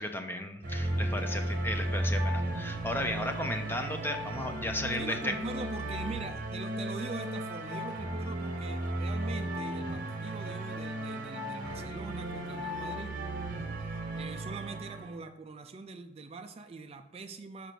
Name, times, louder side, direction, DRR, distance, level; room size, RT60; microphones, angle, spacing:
voice 1, 0.0-5.3, left 1 dB, 10° left, 5 dB, 0.6 m, -34 dB
sound 1, 0.6-15.1, right 1 dB, 45° right, 0.9 m, -35 dB
voice 2, 5.0-13.2 13.8-17.7, right 3 dB, 30° right, 7 dB, 0.4 m, -43 dB
6.7 x 5.0 x 4.5 m, 0.88 s
head